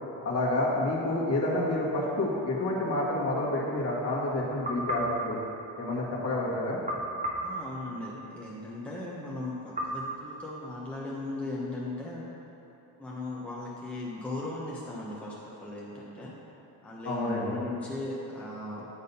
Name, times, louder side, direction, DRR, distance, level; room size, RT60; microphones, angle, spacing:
voice 1, 0.2-5.4 5.8-6.8 17.1-17.6, left 1 dB, 35° left, -5 dB, 1.8 m, -29 dB
sound 1, 4.6-6.2 6.9-8.5 9.8-11.1, right 1 dB, 20° right, 1.3 m, -36 dB
voice 2, 7.4-12.3 13.0-16.3 16.8-18.9, left 2 dB, 5° left, -6 dB, 1.1 m, -37 dB
8.7 x 3.8 x 5.5 m, 2.8 s
cardioid pair, 90°, 43 cm